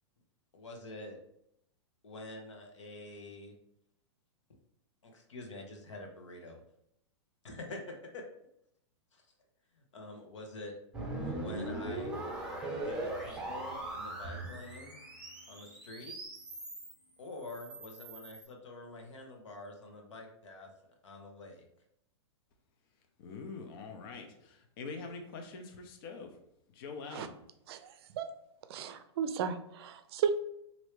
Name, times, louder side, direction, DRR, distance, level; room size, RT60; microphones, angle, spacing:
voice 1, 0.5-1.2 2.0-3.5 5.0-6.6 7.4-8.2 9.1-9.3 9.7-10.7 11.2-12.3 12.8-15.0 15.5-16.2 17.2-20.7 21.0-21.6, left 2 dB, 90° left, 2 dB, 0.9 m, -47 dB
sound 1, 10.9-16.9 17.4-18.4, right 1 dB, 5° right, 0.8 m, -40 dB
voice 2, 23.2-26.3 26.8-27.3, left 4 dB, 50° left, 5 dB, 0.6 m, -44 dB
voice 3, 27.7-28.3 28.7-30.3, right 7 dB, 60° right, 10 dB, 0.4 m, -34 dB
3.2 x 2.6 x 3.1 m, 0.75 s
hypercardioid pair, 140°, 15 cm